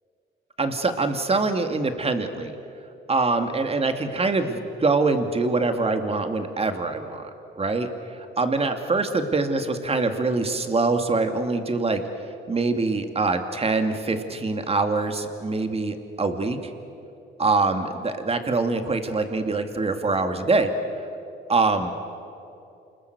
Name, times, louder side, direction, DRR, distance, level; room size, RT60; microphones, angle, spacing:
voice 1, 0.6-2.5 3.1-7.3 7.6-7.9 8.4-12.0 12.5-16.6 17.4-20.7 21.5-21.9, right 3 dB, 30° right, 7 dB, 2.4 m, -24 dB
28.5 x 20.5 x 8.1 m, 2.8 s
cardioid pair, 90°, 20 cm